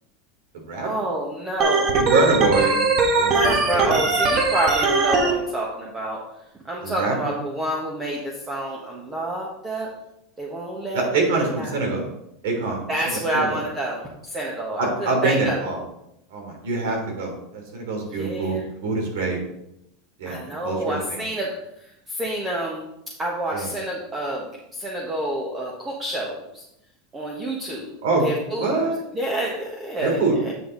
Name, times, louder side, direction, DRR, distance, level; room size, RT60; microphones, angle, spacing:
voice 1, 0.8-1.9 3.3-6.2 6.6-9.9 10.4-11.1 11.6-11.8 12.9-14.0 14.3-15.6 18.1-18.6 20.2-21.5 21.8-22.9 23.2-26.6 27.1-27.9 28.2-28.8 29.1-30.2 30.5-30.6, right 1 dB, 20° right, -2 dB, 1.3 m, -28 dB
Organ, 1.6-5.3, right 3 dB, 35° right, 1.4 m, -20 dB
voice 2, 1.9-2.8 3.1-3.9 6.8-7.3 10.9-12.0 12.4-13.6 14.8-15.8 16.3-18.6 18.8-19.4 20.2-21.2 23.5-23.7 28.0-28.2 28.6-29.0 30.0-30.4, right 3 dB, 80° right, 1 dB, 3.2 m, -24 dB
9.1 x 5.6 x 3.9 m, 0.81 s
supercardioid pair, 130°, 0 cm